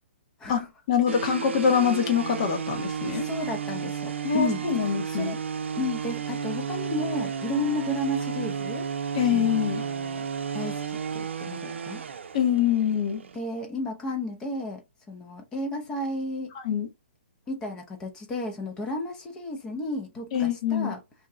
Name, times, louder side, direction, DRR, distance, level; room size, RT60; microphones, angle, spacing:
voice 1, 0.5-3.2 4.2-5.4 9.1-9.8 12.3-13.2 16.6-16.9 20.3-20.9, left 8 dB, 35° left, 1.0 m, -24 dB
sound 1, 1.1-13.4, right 7 dB, 85° right, 0.5 m, -32 dB
voice 2, 3.0-5.4 5.7-8.9 9.3-10.3 10.5-12.0 13.3-16.5 17.5-21.0, left 1 dB, 10° left, 0.7 m, -33 dB
2.9 x 2.8 x 3.5 m
hypercardioid pair, 170°, 6 cm